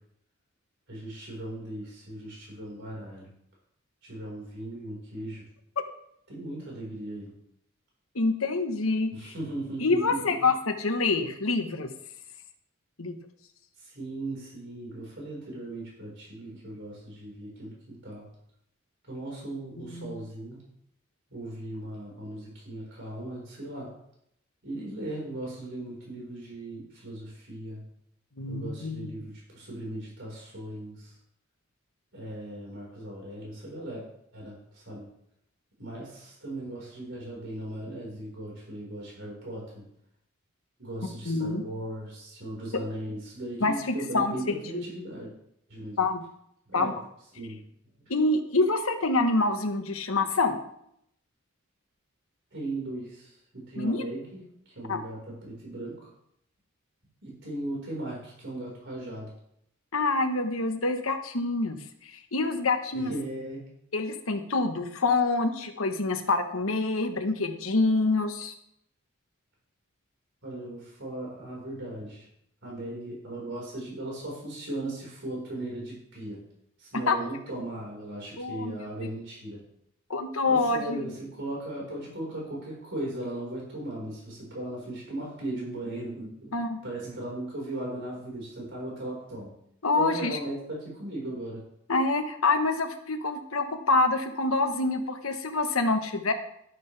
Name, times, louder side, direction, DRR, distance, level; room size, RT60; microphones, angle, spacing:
voice 1, 0.9-3.3 4.0-5.4 6.3-7.3 9.1-10.2 13.8-18.3 19.1-20.6 21.3-23.9 24.6-27.8 28.5-31.1 32.1-34.0 34.3-35.1 35.8-39.9 40.8-45.3 45.7-46.0 46.7-46.9 47.4-47.6 48.0-48.1 52.5-56.1 57.2-59.3 62.9-63.6 70.4-72.3 72.6-76.4 76.8-79.6 80.5-86.6 86.8-89.5 90.0-91.6, right 1 dB, 60° right, -4 dB, 5.0 m, -37 dB
voice 2, 8.1-9.3 9.8-11.9 13.0-13.2 19.8-20.1 28.4-29.2 41.2-41.6 43.6-44.8 46.0-46.2 46.7-46.9 48.1-50.6 53.8-54.1 54.9-55.0 59.9-63.1 63.9-68.5 77.1-77.2 78.4-78.8 80.1-81.0 86.5-86.8 89.8-90.4 91.9-96.3, left 3 dB, 85° left, 6 dB, 1.3 m, -26 dB
11.5 x 11.5 x 3.5 m, 0.72 s
head